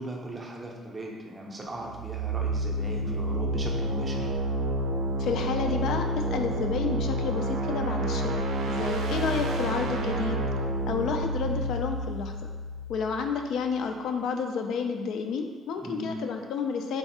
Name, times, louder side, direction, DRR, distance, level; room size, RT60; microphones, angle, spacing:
voice 1, 0.0-4.3 15.8-16.1, right 1 dB, 20° right, -1 dB, 0.5 m, -38 dB
sound 1, 1.8-13.6, right 1 dB, 80° right, 0.4 m, -29 dB
voice 2, 5.2-10.4 10.9-12.3 12.9-17.0, left 5 dB, 70° left, 4 dB, 0.3 m, -30 dB
3.4 x 2.4 x 4.1 m, 1.4 s
cardioid pair, 145°, 0 cm